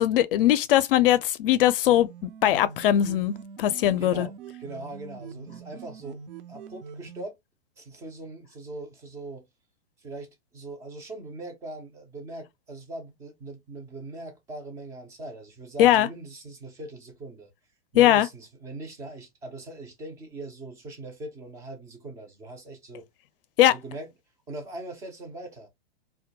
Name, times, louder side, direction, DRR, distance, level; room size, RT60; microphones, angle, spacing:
voice 1, 0.0-4.3 15.8-16.1 17.9-18.3 23.6-23.7, left 12 dB, 60° left, 0.5 m, -20 dB
sound 1, 1.9-7.2, right 6 dB, 60° right, 0.6 m, -44 dB
voice 2, 4.0-4.3 4.6-6.2 6.5-7.3 7.8-9.4 10.0-17.5 17.9-23.1 23.7-24.1 24.5-25.7, right 2 dB, 10° right, 0.3 m, -41 dB
2.2 x 2.1 x 2.7 m
hypercardioid pair, 130°, 31 cm